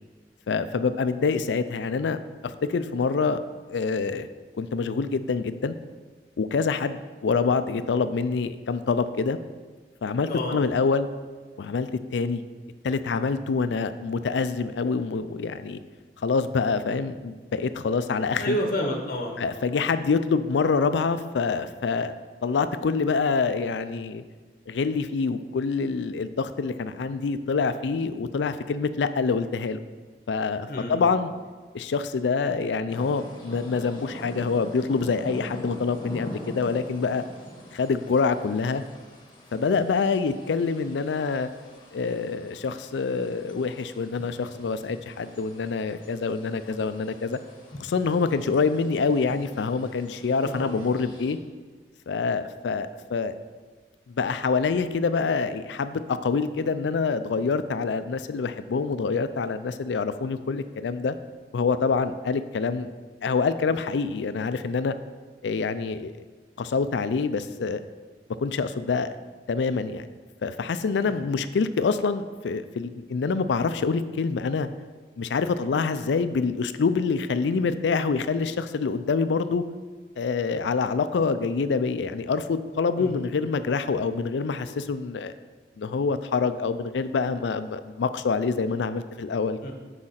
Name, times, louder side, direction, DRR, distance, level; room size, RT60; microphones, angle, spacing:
voice 1, 0.5-2.2 2.4-3.4 3.7-4.3 4.6-5.7 6.4-9.4 10.0-11.1 11.6-12.4 12.8-15.8 16.2-18.6 19.4-22.1 22.4-24.2 24.7-29.8 30.3-31.3 31.7-37.2 37.7-38.8 39.5-41.5 41.9-47.4 47.8-51.4 52.1-53.4 54.1-61.2 61.5-62.9 63.2-64.9 65.4-66.1 66.6-67.8 68.4-69.2 69.5-70.1 70.4-74.7 75.2-79.6 80.2-85.3 85.8-89.6, left 4 dB, 90° left, 12 dB, 0.4 m, -26 dB
voice 2, 10.3-10.6 18.3-19.5 30.7-31.0 50.4-50.7 70.9-71.3 83.0-83.2 89.6-89.7, equal, 50° left, 2 dB, 0.9 m, -30 dB
sound 1, 32.9-51.3, left 1 dB, 25° left, 1.2 m, -44 dB
6.4 x 4.9 x 5.7 m, 1.4 s
head